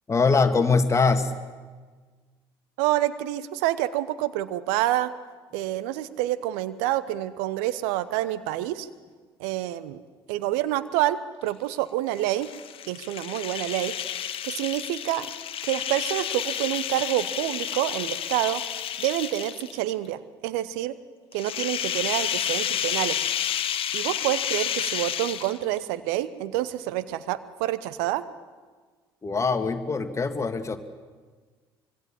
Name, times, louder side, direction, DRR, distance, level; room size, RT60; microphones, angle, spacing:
voice 1, 0.1-1.3 29.2-30.8, left 4 dB, 25° left, 8 dB, 2.0 m, -22 dB
voice 2, 2.8-5.1 5.5-8.9 9.4-10.0 10.3-12.5 12.9-13.9 14.4-15.3 15.6-18.6 19.0-21.0 21.3-23.3 23.9-28.2, right 14 dB, 65° right, 15 dB, 0.9 m, -27 dB
sound 1, 12.2-19.9 21.3-25.8, left 10 dB, 45° left, 1.4 m, -30 dB
25.5 x 23.0 x 7.5 m, 1.5 s
figure-of-eight pair, 55°, 13 cm